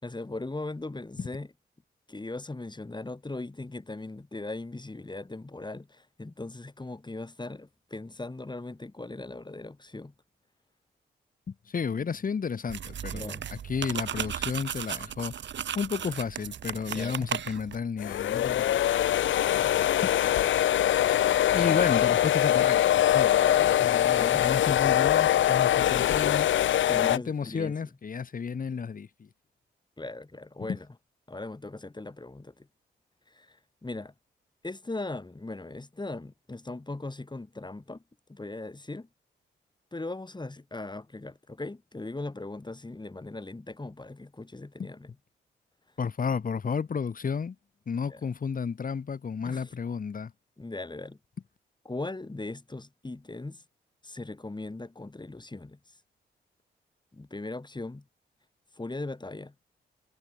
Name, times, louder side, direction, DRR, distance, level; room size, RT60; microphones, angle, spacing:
voice 1, 0.0-1.5 2.1-10.1 13.1-13.5 16.9-17.3 23.3-24.5 26.9-27.9 30.0-30.9 31.3-32.7 33.3-34.1 34.6-38.0 38.3-39.1 39.9-45.1 48.1-48.2 49.4-49.7 50.6-51.2 51.9-53.6 54.0-56.0 57.1-58.0 58.8-59.5, left 2 dB, 20° left, 5.4 m, -39 dB
voice 2, 11.5-15.3 15.7-18.8 20.0-20.1 21.5-23.5 23.8-26.5 27.0-29.3 30.6-30.8 46.0-47.5 47.9-50.3, left 6 dB, 45° left, 1.4 m, -32 dB
sound 1, 12.7-17.8, right 9 dB, 65° right, 1.4 m, -35 dB
sound 2, 18.0-27.2, left 12 dB, 75° left, 0.8 m, -23 dB
supercardioid pair, 55°, 20 cm